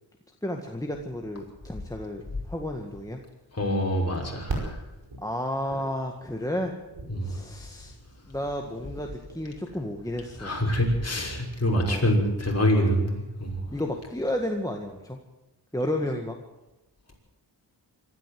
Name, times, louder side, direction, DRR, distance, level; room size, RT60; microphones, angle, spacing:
voice 1, 0.4-2.2 2.5-3.2 5.2-6.8 7.2-8.0 8.3-10.6 11.7-12.1 13.7-15.2 15.7-16.4, left 1 dB, 10° left, 2 dB, 1.8 m, -32 dB
sound 1, 3.0-14.1, right 2 dB, 75° right, 5.2 m, -41 dB
voice 2, 3.5-4.8 7.1-7.4 10.4-13.6, equal, 35° left, -1 dB, 6.0 m, -25 dB
25.0 x 13.5 x 7.8 m, 1.0 s
wide cardioid pair, 90°, 44 cm